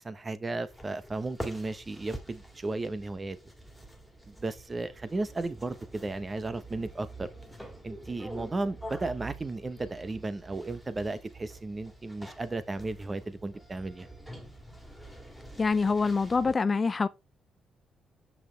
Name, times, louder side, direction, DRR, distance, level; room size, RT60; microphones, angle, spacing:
voice 1, 0.0-3.4 4.3-7.3 7.8-14.1, right 2 dB, 25° right, 0.9 m, -34 dB
sound 1, 0.7-16.6, right 1 dB, ahead, 2.0 m, -46 dB
voice 2, 15.6-17.1, left 4 dB, 30° left, 0.3 m, -25 dB
6.5 x 5.9 x 3.2 m
cardioid pair, 90°, 0 cm